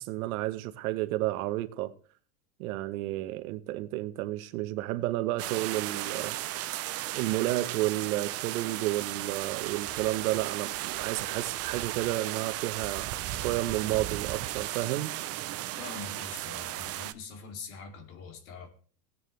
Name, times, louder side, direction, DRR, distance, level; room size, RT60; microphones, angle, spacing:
voice 1, 0.0-1.9 2.6-6.4 7.1-15.1, right 16 dB, 70° right, 1.1 m, -31 dB
sound 1, 5.4-17.1, right 15 dB, 35° right, 0.6 m, -35 dB
voice 2, 15.7-18.7, left 4 dB, 65° left, 2.8 m, -44 dB
17.5 x 9.4 x 3.3 m
supercardioid pair, 125°, 44 cm